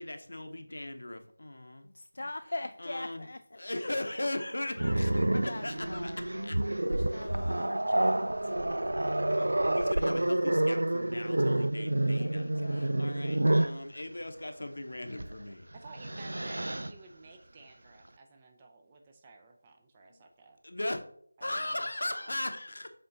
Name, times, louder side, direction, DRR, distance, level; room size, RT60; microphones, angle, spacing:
voice 1, 0.0-1.9 2.8-3.3 3.6-6.6 7.2-7.8 9.3-15.7 20.6-21.0 21.4-22.9, left 1 dB, 75° left, 7 dB, 0.8 m, -38 dB
voice 2, 1.8-3.8 4.3-4.4 5.5-9.0 12.2-13.0, left 2 dB, 60° left, 7 dB, 0.3 m, -43 dB
Growling, 4.8-13.8 15.1-15.3 15.8-16.9, right 1 dB, 80° right, 0.3 m, -29 dB
voice 3, 15.7-20.6 21.4-22.3, right 3 dB, 15° right, 3 dB, 0.5 m, -54 dB
7.0 x 3.4 x 3.9 m, 0.63 s
figure-of-eight pair, 170°, 0 cm